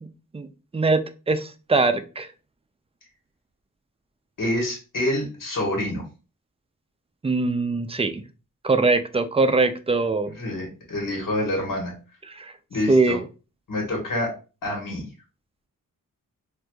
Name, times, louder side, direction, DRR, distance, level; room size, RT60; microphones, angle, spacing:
voice 1, 1.3-2.3 7.2-8.2 8.6-10.3 12.4-12.5 12.9-13.2, right 3 dB, 20° right, 0.3 m, -22 dB
voice 2, 4.4-6.0 10.2-11.9 12.7-13.2 13.7-14.3 14.6-15.0, left 1 dB, 70° left, 1.4 m, -27 dB
4.5 x 2.6 x 2.2 m
wide cardioid pair, 100°, 33 cm